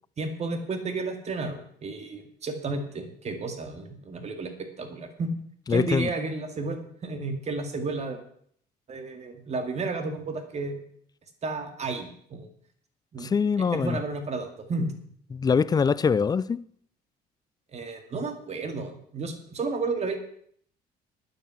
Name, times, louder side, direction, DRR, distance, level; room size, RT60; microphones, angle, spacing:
voice 1, 0.2-4.5 4.8-5.3 5.7-8.2 8.9-10.8 11.4-12.5 13.1-13.3 13.7-14.9 17.7-20.2, right 3 dB, 40° right, 2.2 m, -32 dB
voice 2, 5.7-6.1 13.2-14.0 15.3-16.6, left 6 dB, 25° left, 0.4 m, -23 dB
12.5 x 9.4 x 5.8 m
cardioid pair, 110°, 17 cm